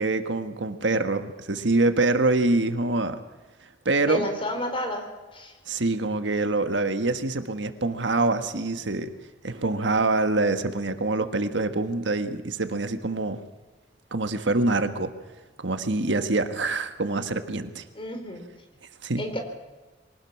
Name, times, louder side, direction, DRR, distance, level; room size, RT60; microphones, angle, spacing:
voice 1, 0.0-3.2 3.8-4.2 5.7-9.1 9.4-13.4 14.1-15.1 15.6-17.8 19.0-19.2, right 2 dB, 80° right, 8 dB, 1.5 m, -25 dB
voice 2, 4.1-5.1 5.3-5.5 17.9-18.4 19.2-19.4, left 1 dB, 30° left, 4 dB, 4.1 m, -30 dB
23.5 x 19.0 x 6.0 m, 1.2 s
head